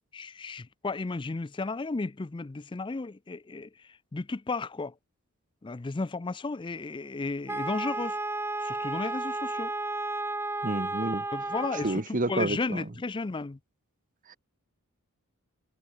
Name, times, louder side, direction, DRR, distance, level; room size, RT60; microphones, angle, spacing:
voice 1, 0.1-4.9 5.6-8.2 8.6-9.7 11.3-13.6, left 3 dB, 20° left, 0.4 m, -34 dB
Wind instrument woodwind instrument, 7.5-12.0, right 2 dB, 10° right, 1.0 m, -33 dB
voice 2, 10.6-11.2 11.8-12.8 14.3-14.4, right 2 dB, 35° right, 1.3 m, -29 dB
head